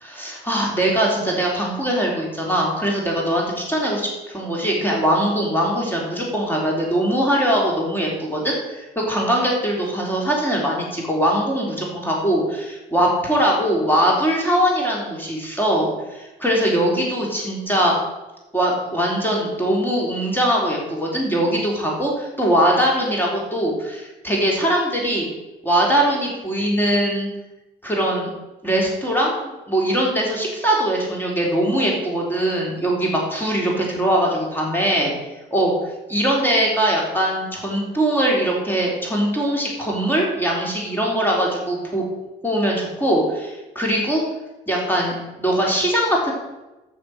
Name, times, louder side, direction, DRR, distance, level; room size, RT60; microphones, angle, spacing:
voice 1, 0.0-18.0 18.5-25.3 25.6-27.3 27.8-28.3 28.6-29.4 29.7-35.1 35.5-35.7 36.1-42.0 42.4-44.2 44.7-46.3, right 1 dB, 10° left, -2 dB, 3.7 m, -21 dB
8.7 x 6.9 x 7.9 m, 1.0 s
cardioid pair, 90°, 20 cm